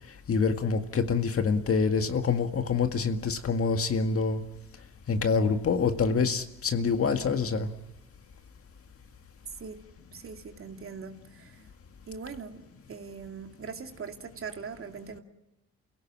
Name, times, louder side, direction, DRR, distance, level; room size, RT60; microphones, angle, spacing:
voice 1, 0.0-4.4 5.1-7.7, left 5 dB, 50° left, 7 dB, 1.9 m, -26 dB
voice 2, 10.1-11.6 12.1-12.6 12.9-15.2, right 5 dB, 45° right, 5 dB, 2.6 m, -41 dB
28.5 x 17.0 x 7.5 m, 1.0 s
cardioid pair, 90°, 30 cm